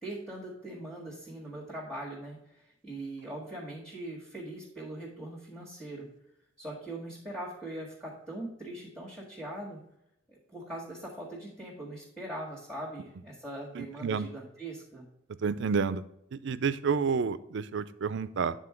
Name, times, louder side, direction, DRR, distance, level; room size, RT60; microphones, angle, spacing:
voice 1, 0.0-6.1 6.6-9.8 10.3-15.1, right 1 dB, ahead, -6 dB, 1.6 m, -41 dB
voice 2, 13.7-14.3 15.4-16.0 16.3-18.5, right 5 dB, 65° right, 14 dB, 0.4 m, -30 dB
9.0 x 3.8 x 4.9 m, 0.81 s
head